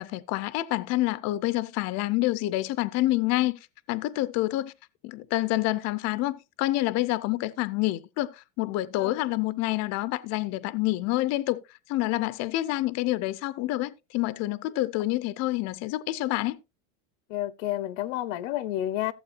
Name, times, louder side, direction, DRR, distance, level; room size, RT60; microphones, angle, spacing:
voice 1, 0.0-3.6 3.9-4.7 5.0-11.6 11.9-16.6, left 17 dB, 45° left, 0.6 m, -27 dB
voice 2, 17.3-19.1, left 13 dB, 80° left, 0.9 m, -30 dB
15.0 x 7.9 x 2.5 m
supercardioid pair, 145°, 38 cm